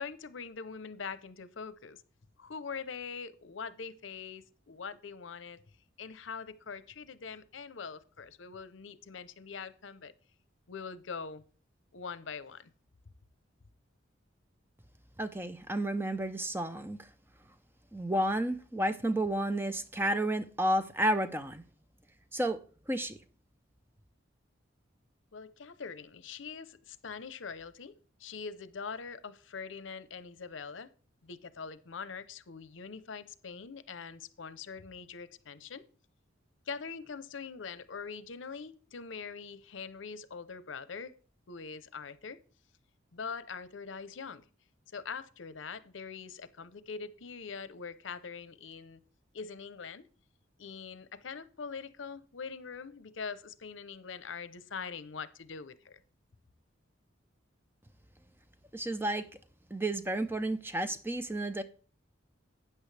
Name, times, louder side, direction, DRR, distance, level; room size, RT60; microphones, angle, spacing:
voice 1, 0.0-2.0 2.4-5.6 6.0-10.1 10.7-11.5 11.9-12.7 25.3-30.9 31.2-35.8 36.7-41.1 41.5-42.4 43.1-44.4 44.9-49.0 49.3-50.1 50.6-56.0, left 5 dB, 85° left, 0.8 m, -43 dB
voice 2, 15.2-17.0 17.9-21.6 22.3-22.6 22.9-23.2 58.7-59.3 59.7-61.6, right 1 dB, 10° right, 0.6 m, -31 dB
12.5 x 8.8 x 3.3 m
head